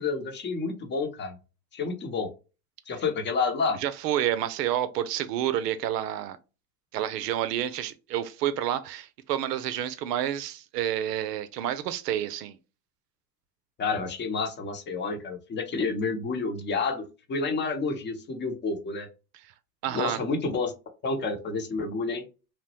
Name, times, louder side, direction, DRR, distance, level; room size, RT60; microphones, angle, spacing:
voice 1, 0.0-1.3 1.7-2.3 2.9-3.8 13.8-19.1 19.9-20.7 21.0-22.2, left 4 dB, 25° left, 0.8 m, -29 dB
voice 2, 3.7-6.4 6.9-12.6 19.8-20.2, right 11 dB, 80° right, 0.6 m, -29 dB
3.1 x 2.1 x 2.9 m
hypercardioid pair, 100°, 48 cm